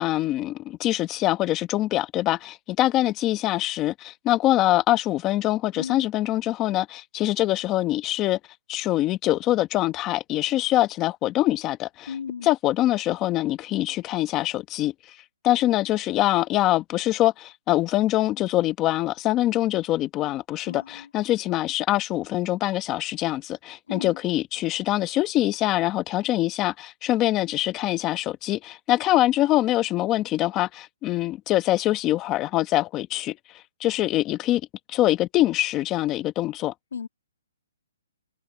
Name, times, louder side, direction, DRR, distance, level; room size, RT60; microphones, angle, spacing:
voice 1, 0.0-8.4 8.7-12.1 12.4-14.9 15.4-33.4 33.8-34.6 34.9-36.7, left 15 dB, 20° left, 1.0 m, -24 dB
voice 2, 5.8-6.1 12.1-12.5 20.7-21.1 23.9-24.2 36.9-37.1, left 6 dB, 80° left, 2.4 m, -35 dB
hypercardioid pair, 165°, 0 cm